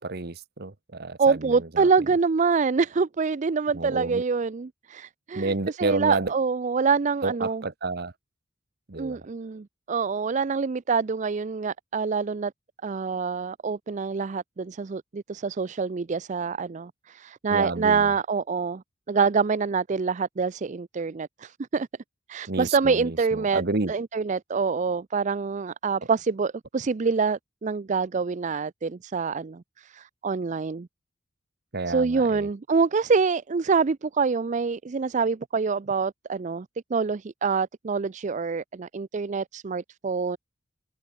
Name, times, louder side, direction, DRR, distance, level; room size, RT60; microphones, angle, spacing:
voice 1, 0.0-1.9 3.7-4.2 5.3-6.3 7.2-8.1 8.9-9.2 17.5-18.1 22.5-23.9 31.7-32.5, right 3 dB, 60° right, 1.3 m, -30 dB
voice 2, 1.2-7.6 9.0-12.5 12.8-21.9 22.3-23.6 23.9-30.9 31.9-36.7 36.9-40.4, right 5 dB, 40° right, 0.4 m, -26 dB
head